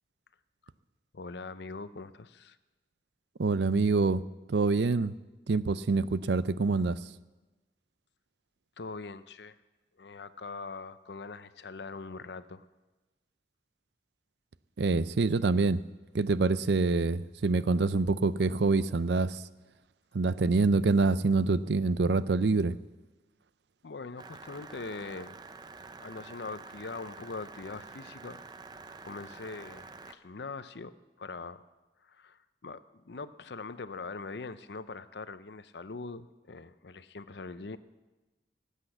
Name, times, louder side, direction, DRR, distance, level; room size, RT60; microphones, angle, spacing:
voice 1, 1.1-2.6 8.8-9.6 10.0-12.6 23.8-25.4 26.0-28.4 29.0-30.9 31.2-31.6 32.0-37.8, left 4 dB, 75° left, 13 dB, 0.6 m, -42 dB
voice 2, 3.4-4.2 4.5-5.1 5.5-7.0 14.8-15.8 16.1-19.4 20.1-22.8, right 3 dB, 80° right, 16 dB, 0.5 m, -26 dB
sound 1, 24.2-30.2, right 3 dB, 25° right, 0.5 m, -48 dB
19.0 x 8.3 x 7.9 m, 1.2 s
head